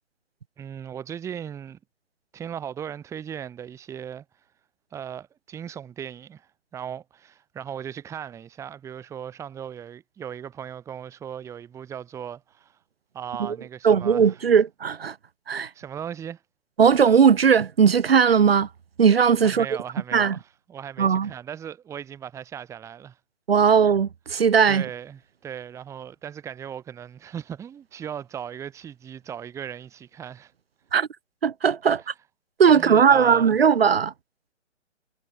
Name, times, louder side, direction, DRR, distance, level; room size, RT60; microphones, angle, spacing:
voice 1, 0.6-1.8 2.3-4.3 4.9-12.8 13.1-14.4 15.7-16.4 19.4-23.2 24.7-30.5 32.0-32.1 32.7-33.6, right 8 dB, 10° right, 1.9 m, -37 dB
voice 2, 13.8-15.1 15.5-15.7 16.8-18.7 19.0-19.7 20.1-20.4 21.0-21.3 23.5-24.8 30.9-31.1 31.4-32.0 32.6-34.1, right 7 dB, 50° right, 1.9 m, -18 dB
figure-of-eight pair, 140°, 37 cm